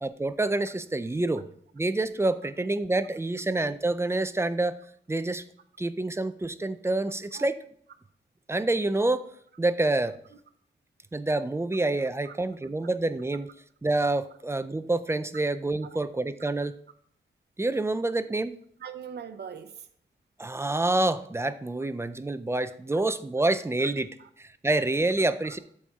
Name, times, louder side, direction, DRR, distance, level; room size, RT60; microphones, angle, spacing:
voice 1, 0.0-1.4 1.8-4.8 5.1-5.4 5.8-7.6 8.5-9.3 9.6-10.1 11.1-13.5 13.8-16.8 17.6-18.5 20.4-24.1 24.4-25.6, right 2 dB, 15° right, 13 dB, 0.3 m, -27 dB
voice 2, 18.8-19.9 22.9-23.0 23.8-23.9 24.2-24.3 25.4-25.6, right 7 dB, 60° right, 8 dB, 0.6 m, -42 dB
12.0 x 4.2 x 3.6 m, 0.63 s
wide cardioid pair, 150°, 20 cm